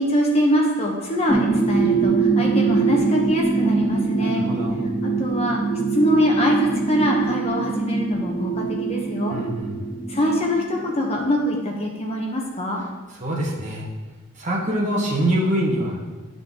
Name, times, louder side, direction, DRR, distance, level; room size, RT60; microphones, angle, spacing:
voice 1, 0.0-4.4 5.0-5.6 5.9-9.4 10.1-12.8, equal, 30° left, -1 dB, 0.9 m, -23 dB
sound 1, 1.3-11.7, right 4 dB, 10° right, 0.7 m, -23 dB
voice 2, 4.2-4.8 9.3-9.7 13.2-13.8 14.4-16.0, right 1 dB, 35° right, -3 dB, 1.3 m, -24 dB
11.5 x 3.9 x 3.8 m, 1.3 s
head